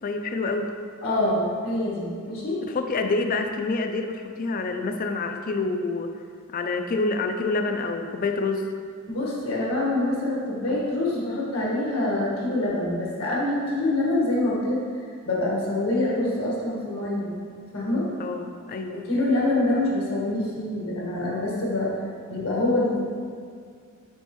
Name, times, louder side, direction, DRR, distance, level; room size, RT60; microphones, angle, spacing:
voice 1, 0.0-0.7 2.7-6.1 6.5-8.7 18.2-19.1, left 3 dB, 40° left, 6 dB, 0.4 m, -27 dB
voice 2, 1.0-2.6 9.1-14.8 15.3-17.3 17.7-18.1 18.9-21.9 22.3-23.2, left 1 dB, 85° left, -5 dB, 1.6 m, -25 dB
6.7 x 5.3 x 3.1 m, 2.1 s
head